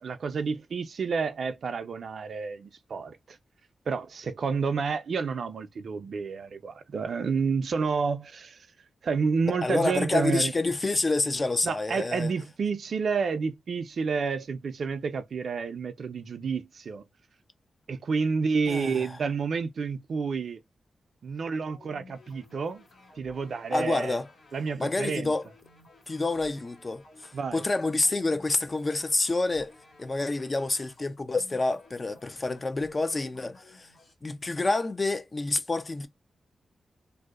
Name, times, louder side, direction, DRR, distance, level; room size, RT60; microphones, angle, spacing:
voice 1, 0.0-3.4 3.9-8.7 9.0-10.5 11.6-17.0 17.9-20.6 21.2-22.8 23.2-24.2 24.5-25.3 27.3-27.6, right 5 dB, 70° right, 0.4 m, -30 dB
voice 2, 9.6-12.3 18.7-19.1 23.7-24.3 24.8-25.5 26.1-29.7 30.0-33.9 34.2-36.1, left 2 dB, 40° left, 0.4 m, -28 dB
sound 1, 21.5-34.1, left 2 dB, 65° left, 1.5 m, -55 dB
2.6 x 2.0 x 2.3 m
supercardioid pair, 45°, 0 cm